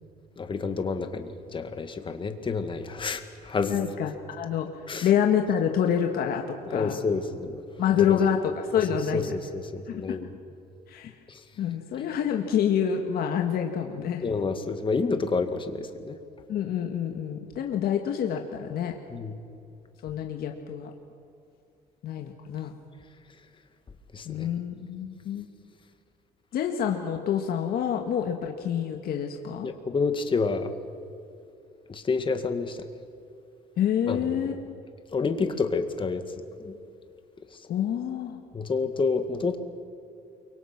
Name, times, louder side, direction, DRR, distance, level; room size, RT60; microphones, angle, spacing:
voice 1, 0.4-3.8 4.9-5.1 6.7-7.6 8.0-8.2 8.9-10.3 11.3-11.4 14.2-16.2 19.1-19.3 24.1-24.5 29.6-30.7 31.9-32.8 34.1-34.4 35.1-36.2 36.6-36.7 38.5-39.6, left 4 dB, 30° left, 7 dB, 2.0 m, -29 dB
voice 2, 3.6-4.7 5.0-7.0 7.8-9.3 9.9-10.0 10.9-11.1 11.6-14.2 16.5-18.9 20.0-20.9 22.0-22.7 24.3-25.5 26.5-29.7 33.8-34.8 37.7-38.4, left 8 dB, 65° left, 3 dB, 1.9 m, -27 dB
29.5 x 23.5 x 6.1 m, 2.6 s
cardioid pair, 110°, 17 cm